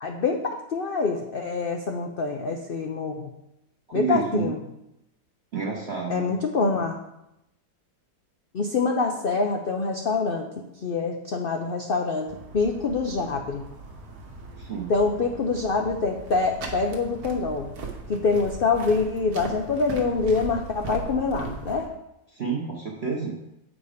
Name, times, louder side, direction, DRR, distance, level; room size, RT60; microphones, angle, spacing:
voice 1, 0.0-3.3 3.9-4.6 6.1-6.9 8.5-10.5 10.8-13.6 14.9-17.7 18.1-21.9, left 4 dB, 70° left, 3 dB, 0.5 m, -25 dB
voice 2, 3.9-4.5 5.5-6.3 14.6-14.9 22.3-23.3, right 6 dB, 45° right, -3 dB, 1.1 m, -29 dB
sound 1, 12.3-21.9, right 3 dB, 65° right, 1.6 m, -39 dB
8.0 x 5.0 x 5.0 m, 0.86 s
omnidirectional pair, 1.8 m